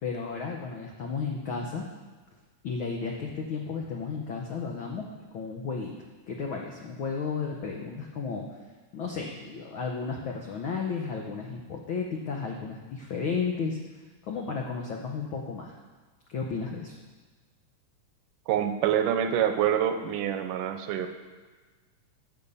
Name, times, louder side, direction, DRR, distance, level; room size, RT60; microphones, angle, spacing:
voice 1, 0.0-1.8 2.6-5.1 5.3-5.9 6.3-8.5 8.9-13.8 14.2-15.8 16.3-16.9, left 5 dB, 80° left, 0 dB, 1.1 m, -33 dB
voice 2, 18.5-21.1, right 9 dB, 85° right, 7 dB, 2.3 m, -26 dB
13.5 x 6.7 x 5.5 m, 1.3 s
omnidirectional pair, 3.7 m